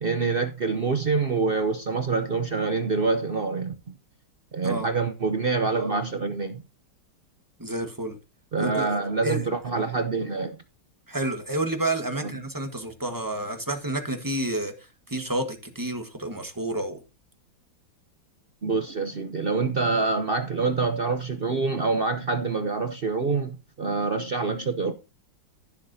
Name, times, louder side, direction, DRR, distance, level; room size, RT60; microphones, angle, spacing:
voice 1, 0.0-4.0 4.5-6.6 8.5-10.6 12.2-12.3 18.6-24.9, right 4 dB, 60° right, 0.6 m, -26 dB
voice 2, 7.6-8.2 8.6-8.8 9.2-9.5 11.1-14.7 15.1-17.0, right 1 dB, 10° right, 1.2 m, -29 dB
16.0 x 7.3 x 2.7 m
omnidirectional pair, 2.0 m